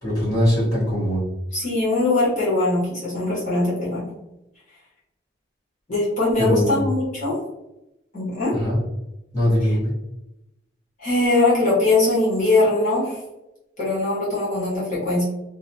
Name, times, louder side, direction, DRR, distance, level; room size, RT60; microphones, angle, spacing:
voice 1, 0.0-1.2 6.4-6.8 8.5-8.8 9.3-9.9, equal, 15° left, -11 dB, 1.2 m, -21 dB
voice 2, 1.5-4.1 5.9-7.4 8.1-8.5 11.0-13.2 13.8-15.2, left 2 dB, 40° left, -9 dB, 1.2 m, -21 dB
2.7 x 2.2 x 2.7 m, 0.91 s
head